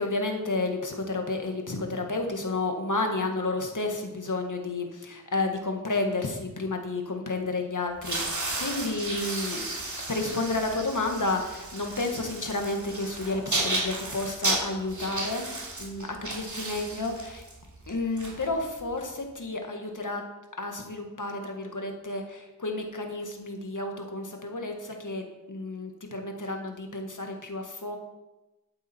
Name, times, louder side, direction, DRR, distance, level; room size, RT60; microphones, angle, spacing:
voice 1, 0.0-9.7 10.1-15.5 15.8-17.4 17.9-20.3 20.6-28.0, left 2 dB, 60° left, 3 dB, 1.8 m, -31 dB
sound 1, 7.9-19.0, right 2 dB, 55° right, 3.0 m, -33 dB
11.5 x 8.6 x 4.5 m, 1.0 s
wide cardioid pair, 60°, 36 cm